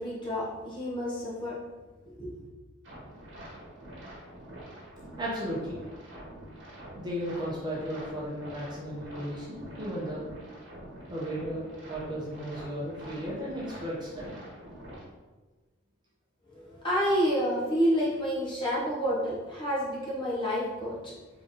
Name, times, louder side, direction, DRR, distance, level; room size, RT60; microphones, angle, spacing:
voice 1, 0.0-1.6 2.1-2.4 16.5-21.1, equal, 25° left, -7 dB, 1.1 m, -29 dB
sound 1, 2.8-15.0, right 1 dB, 55° right, 1.2 m, -46 dB
voice 2, 5.2-5.8 7.0-10.2 11.1-14.4, equal, 20° right, -5 dB, 0.9 m, -35 dB
3.8 x 3.3 x 4.1 m, 1.2 s
head